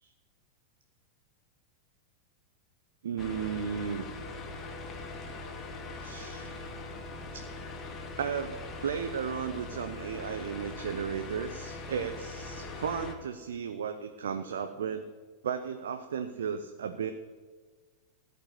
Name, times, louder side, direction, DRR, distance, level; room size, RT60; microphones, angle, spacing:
voice 1, 3.0-4.1 6.0-6.5 7.3-7.4 8.2-15.0 15.4-17.1, right 7 dB, 65° right, 8 dB, 0.7 m, -34 dB
sound 1, 3.2-13.1, left 3 dB, 25° left, 1.9 m, -41 dB
16.0 x 5.5 x 9.5 m, 1.4 s
figure-of-eight pair, 90°, 0 cm